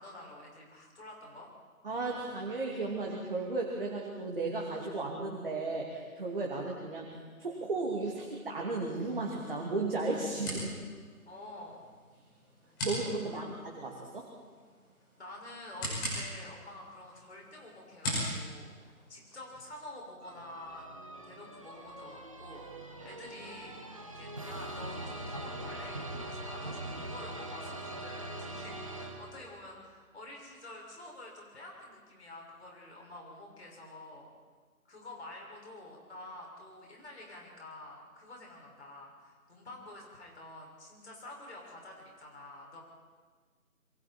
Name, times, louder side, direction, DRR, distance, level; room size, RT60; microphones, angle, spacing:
voice 1, 0.0-1.5 11.3-11.8 13.3-13.6 15.2-20.9 21.2-22.6 23.0-23.7 24.1-34.3 34.8-42.8, left 1 dB, 45° left, -1 dB, 6.2 m, -48 dB
voice 2, 1.8-10.7 12.8-14.3, right 3 dB, 40° right, -2 dB, 2.8 m, -35 dB
sound 1, 8.7-19.6, equal, 15° left, 5.8 m, -42 dB
sound 2, 20.2-29.7, right 1 dB, 25° right, 1.1 m, -42 dB
27.0 x 23.0 x 4.5 m, 1.5 s
figure-of-eight pair, 165°, 44 cm